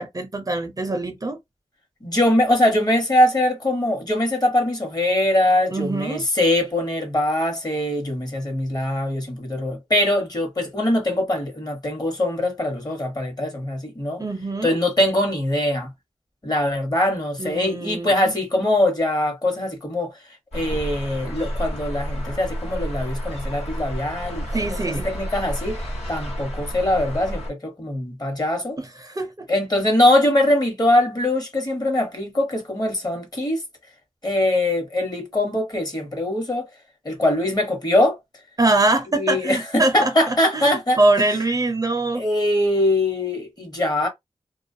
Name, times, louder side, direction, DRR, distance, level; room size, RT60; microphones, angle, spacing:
voice 1, 0.0-1.4 5.7-6.2 14.2-14.8 17.4-18.3 24.5-25.1 28.8-29.5 38.6-42.3, right 2 dB, 30° right, 0.5 m, -23 dB
voice 2, 2.0-14.2 14.6-15.9 16.4-20.1 20.5-25.8 26.1-28.8 29.5-33.6 34.2-36.7 37.0-38.2 39.1-41.0 42.1-44.1, left 1 dB, 35° left, 1.1 m, -22 dB
sound 1, 20.5-27.5, equal, 70° left, 1.2 m, -30 dB
2.3 x 2.2 x 2.6 m
wide cardioid pair, 70°, 11 cm